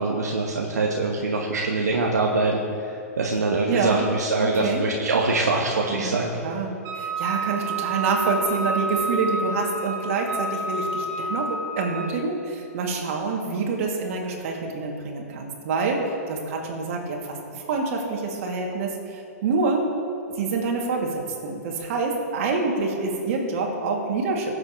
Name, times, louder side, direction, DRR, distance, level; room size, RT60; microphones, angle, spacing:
voice 1, 0.0-2.6 3.2-6.3, right 3 dB, 85° right, -1 dB, 1.1 m, -23 dB
voice 2, 3.7-4.1 4.4-4.8 5.9-19.9 20.4-24.6, right 4 dB, 55° right, 0 dB, 2.2 m, -27 dB
Wind instrument woodwind instrument, 6.8-12.2, right 2 dB, 35° right, 1.6 m, -29 dB
19.5 x 7.7 x 3.0 m, 2.7 s
hypercardioid pair, 115°, 9 cm